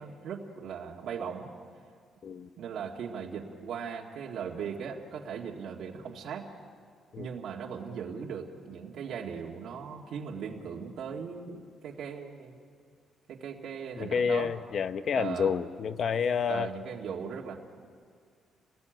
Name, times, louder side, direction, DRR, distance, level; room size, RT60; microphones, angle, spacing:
voice 1, 0.0-1.5 2.6-6.5 7.2-12.6 13.3-14.5 15.2-15.5 16.5-17.6, right 6 dB, 65° right, -1 dB, 2.0 m, -38 dB
voice 2, 14.0-16.7, left 6 dB, 45° left, 11 dB, 0.9 m, -29 dB
29.0 x 20.0 x 9.2 m, 2.1 s
cardioid pair, 175°, 0 cm